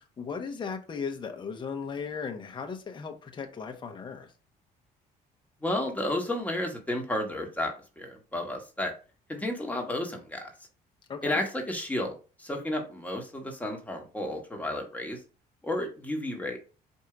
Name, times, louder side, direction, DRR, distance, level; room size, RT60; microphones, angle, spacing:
voice 1, 0.0-4.3 11.1-11.4, left 5 dB, 30° left, 0.8 m, -36 dB
voice 2, 5.6-8.9 9.3-10.5 11.2-15.2 15.6-16.6, left 1 dB, 10° left, 1.2 m, -32 dB
4.5 x 2.7 x 3.7 m
cardioid pair, 110°, 17 cm